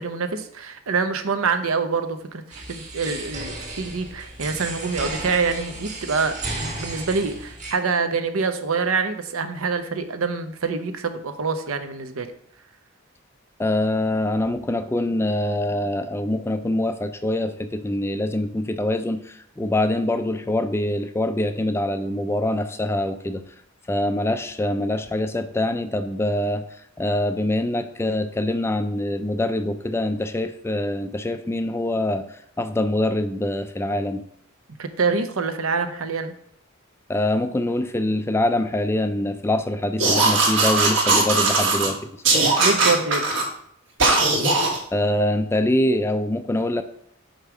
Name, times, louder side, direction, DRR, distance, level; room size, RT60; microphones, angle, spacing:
voice 1, 0.0-12.3 34.8-36.3 42.6-43.3, right 4 dB, 80° right, 8 dB, 0.8 m, -26 dB
sound 1, 2.5-7.7, right 2 dB, 35° right, 1.6 m, -34 dB
voice 2, 13.6-23.4 23.9-26.6 27.0-34.2 37.1-42.2 44.9-46.8, left 1 dB, 10° left, 10 dB, 0.3 m, -24 dB
sound 2, 40.0-41.9 42.2-43.5 44.0-44.8, right 3 dB, 65° right, 1.5 m, -19 dB
5.3 x 4.6 x 6.1 m, 0.67 s
head